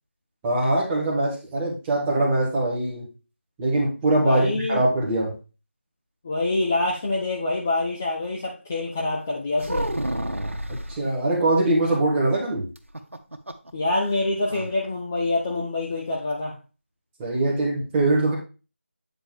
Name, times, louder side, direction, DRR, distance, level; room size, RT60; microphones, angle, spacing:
voice 1, 0.4-3.1 3.6-5.4 10.7-12.7 17.2-18.3, right 2 dB, 5° right, -5 dB, 1.0 m, -22 dB
voice 2, 4.2-4.8 6.2-9.9 13.7-16.6, left 2 dB, 10° left, -3 dB, 0.5 m, -26 dB
sound 1, 9.6-11.0 12.8-13.7 14.0-14.1 14.5-14.7, right 1 dB, 90° right, 1.0 m, -29 dB
8.8 x 4.4 x 3.6 m, 0.32 s
figure-of-eight pair, 170°, 7 cm